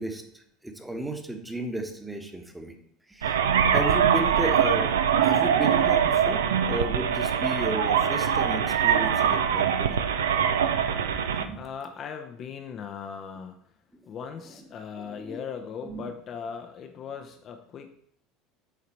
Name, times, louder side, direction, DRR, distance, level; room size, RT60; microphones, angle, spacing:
voice 1, 0.0-2.8 3.1-3.4 3.7-4.9 5.2-10.0 10.8-10.9 11.4-11.6 15.0-15.4 15.8-16.1, right 1 dB, 10° right, 5 dB, 1.1 m, -34 dB
sound 1, 3.2-11.5, right 8 dB, 75° right, 0.4 m, -23 dB
voice 2, 11.5-13.6 14.1-18.0, left 6 dB, 40° left, 5 dB, 0.6 m, -38 dB
8.4 x 3.9 x 4.4 m, 0.68 s
figure-of-eight pair, 70°, 0 cm